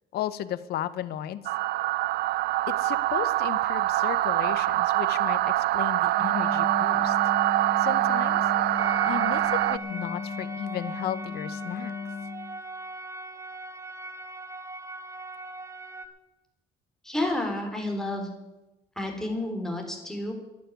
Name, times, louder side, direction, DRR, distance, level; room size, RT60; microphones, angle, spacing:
voice 1, 0.1-1.4 2.7-7.3 7.8-8.4 9.0-11.9, left 12 dB, 70° left, 14 dB, 0.9 m, -34 dB
sound 1, 1.5-9.8, right 16 dB, 70° right, 0.4 m, -25 dB
Wind instrument woodwind instrument, 6.1-12.6, left 5 dB, 25° left, 0.7 m, -36 dB
sound 2, 8.8-16.1, right 2 dB, 15° right, 1.3 m, -39 dB
voice 2, 17.0-18.3 19.0-20.3, left 1 dB, 5° left, 2 dB, 3.8 m, -30 dB
11.5 x 9.6 x 9.1 m, 0.99 s
cardioid pair, 110°, 17 cm